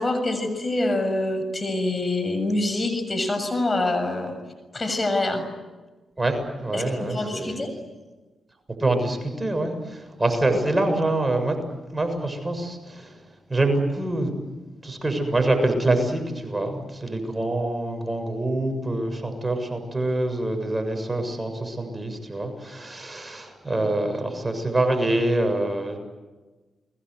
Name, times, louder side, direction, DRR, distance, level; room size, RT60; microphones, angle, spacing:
voice 1, 0.0-4.4 4.7-5.4 6.7-7.7, left 2 dB, 35° left, 8 dB, 7.0 m, -25 dB
voice 2, 6.2-7.7 8.8-11.6 11.9-13.2 13.5-14.3 14.8-26.0, right 2 dB, 25° right, 6 dB, 7.1 m, -25 dB
29.5 x 22.5 x 8.1 m, 1.2 s
supercardioid pair, 45°, 0 cm